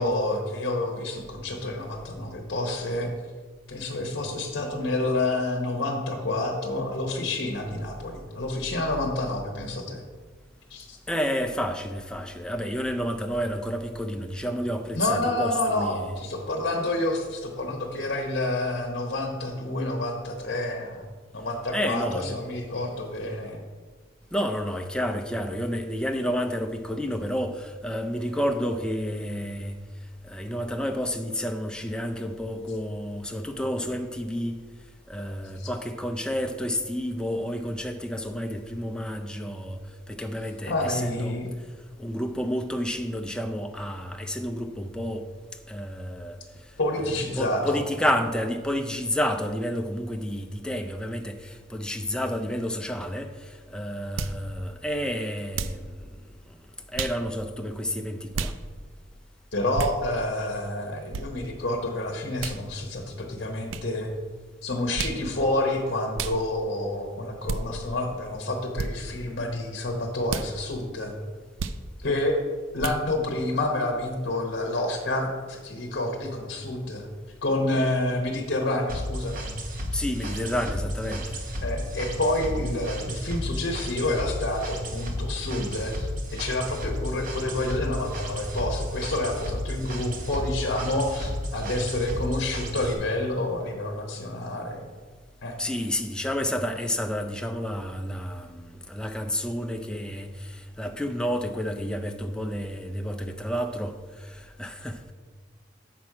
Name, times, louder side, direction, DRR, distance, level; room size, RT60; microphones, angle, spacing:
voice 1, 0.0-3.1 3.7-10.0 10.7-11.0 15.0-21.0 21.3-23.6 35.6-35.7 40.6-41.5 46.8-47.8 59.5-64.1 64.6-71.1 72.0-72.4 72.7-77.1 77.4-79.5 81.6-94.9 95.4-95.5, left 1 dB, 55° left, 0.9 m, -28 dB
voice 2, 11.1-16.1 21.7-22.4 24.3-29.8 30.2-34.6 35.1-41.4 42.0-45.3 45.7-46.4 47.3-56.1 56.9-58.5 79.9-81.4 81.8-82.0 95.6-105.1, equal, 5° left, 0.4 m, -30 dB
sound 1, 54.2-54.4 55.5-55.8 56.9-57.2 58.3-58.6 59.7-60.0 61.1-61.3 62.4-62.6 63.7-63.9 64.9-65.2 66.1-66.4 67.5-67.6 68.7-68.9 70.3-70.5 71.6-71.8 72.8-73.0, right 4 dB, 85° right, 0.4 m, -31 dB
sound 2, 78.9-92.9, equal, 45° right, 1.0 m, -33 dB
7.2 x 6.0 x 4.8 m
head